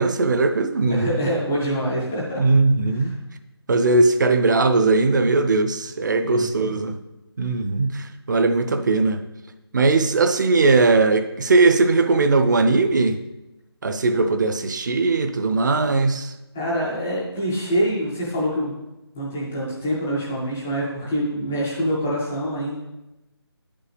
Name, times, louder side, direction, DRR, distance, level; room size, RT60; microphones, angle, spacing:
voice 1, 0.0-1.1 2.4-3.1 3.7-6.9 7.4-9.2 9.7-13.2 13.8-16.3, right 3 dB, 45° right, 9 dB, 0.7 m, -19 dB
voice 2, 0.9-2.4 2.9-3.1 6.2-6.8 16.5-18.7 19.1-22.8, equal, 5° left, -6 dB, 0.3 m, -25 dB
9.5 x 5.4 x 5.0 m, 0.99 s
figure-of-eight pair, 165°, 14 cm